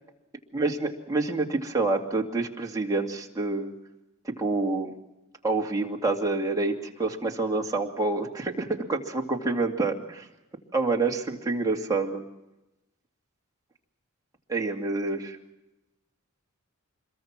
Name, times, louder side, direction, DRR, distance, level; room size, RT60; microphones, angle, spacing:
voice 1, 0.5-3.7 4.2-4.9 5.4-10.3 10.7-12.2 14.5-15.4, right 3 dB, 15° right, -1 dB, 2.4 m, -27 dB
26.5 x 22.5 x 6.0 m, 0.97 s
head